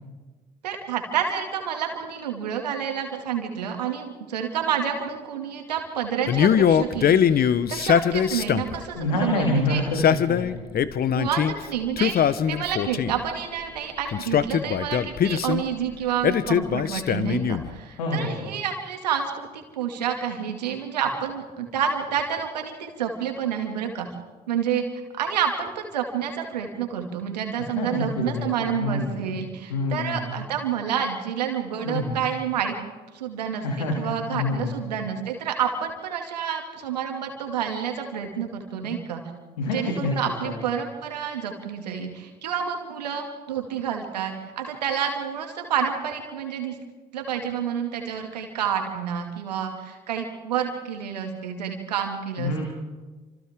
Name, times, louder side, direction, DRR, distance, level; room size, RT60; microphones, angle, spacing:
voice 1, 0.6-9.8 11.2-24.1 24.5-24.8 25.2-32.8 33.1-39.2 39.6-46.7 47.1-52.6, right 8 dB, 90° right, 3 dB, 2.5 m, -29 dB
Male speech man speaking, 6.3-8.8 9.8-11.5 12.0-13.2 14.1-15.6 16.2-17.7, left 8 dB, 50° left, 1.0 m, -22 dB
voice 2, 9.0-10.9 18.0-18.5 27.6-29.2 29.7-30.4 31.9-32.2 33.6-34.7 39.6-40.1 40.4-40.6 52.4-52.6, left 2 dB, 85° left, -1 dB, 2.7 m, -27 dB
29.0 x 26.5 x 3.7 m, 1.3 s
hypercardioid pair, 50°, 20 cm